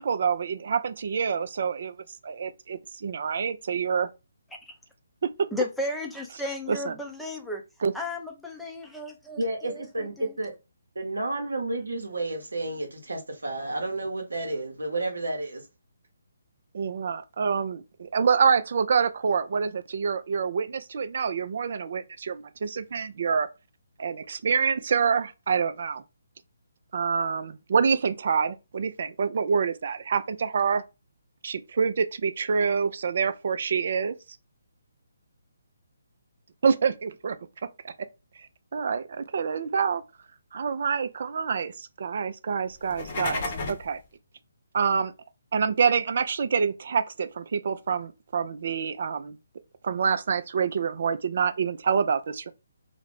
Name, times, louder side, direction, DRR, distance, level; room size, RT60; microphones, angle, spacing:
voice 1, 0.0-1.9 2.2-4.1 5.4-5.5 6.7-6.9 7.8-7.9 16.7-23.5 24.0-26.0 26.9-30.8 31.4-34.1 36.6-37.4 37.8-37.9 38.7-40.0 40.5-44.0 44.7-45.1 45.5-49.4 49.8-52.5, right 6 dB, 55° right, 0.3 m, -26 dB
voice 2, 5.5-7.6 7.9-10.3, left 2 dB, ahead, 0.5 m, -34 dB
voice 3, 9.4-10.5 11.0-15.6, right 2 dB, 80° right, 0.7 m, -31 dB
sound 1, 42.8-43.9, left 2 dB, 40° left, 0.7 m, -32 dB
2.4 x 2.0 x 3.2 m
figure-of-eight pair, 145°, 0 cm